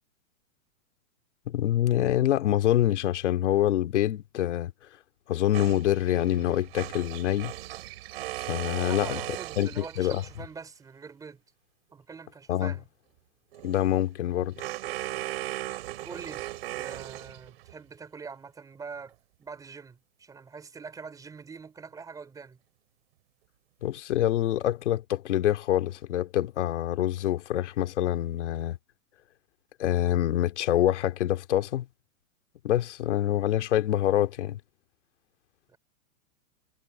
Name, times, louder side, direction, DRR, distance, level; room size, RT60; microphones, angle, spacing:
voice 1, 1.5-4.7 5.3-7.5 8.4-9.2 9.6-10.2 12.5-12.7 13.6-14.6 23.8-28.8 29.8-31.9 32.6-34.6, left 12 dB, 55° left, 2.8 m, -26 dB
sound 1, 5.5-10.5 13.5-17.7, right 16 dB, 45° right, 4.3 m, -38 dB
voice 2, 8.8-11.4 11.9-12.9 16.0-16.5 16.8-19.1 19.4-22.6 35.7-35.8, right 5 dB, 10° right, 4.9 m, -44 dB
hypercardioid pair, 170°, 42 cm